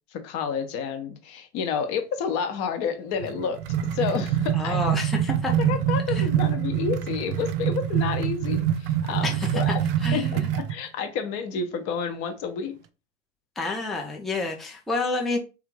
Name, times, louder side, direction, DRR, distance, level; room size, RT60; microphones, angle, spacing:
voice 1, 0.1-4.9 5.6-9.7 10.1-12.8, left 6 dB, 40° left, 0.7 m, -30 dB
sound 1, 3.2-10.7, right 10 dB, 55° right, 0.5 m, -25 dB
voice 2, 4.5-5.5 6.1-6.3 9.2-9.6 10.0-10.5 13.6-15.4, left 3 dB, ahead, 0.5 m, -29 dB
3.3 x 2.4 x 3.1 m
figure-of-eight pair, 85°, 35 cm